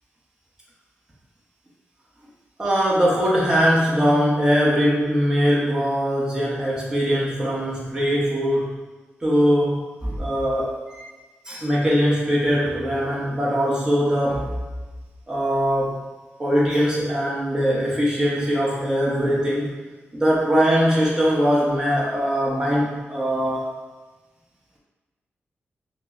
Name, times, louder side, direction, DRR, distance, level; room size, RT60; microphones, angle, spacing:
voice 1, 2.6-8.8 9.2-11.1 11.4-14.6 15.3-16.1 16.4-19.7 20.1-23.7, equal, 15° right, -6 dB, 0.9 m, -21 dB
5.4 x 2.0 x 2.4 m, 1.2 s
wide cardioid pair, 130°, 4 cm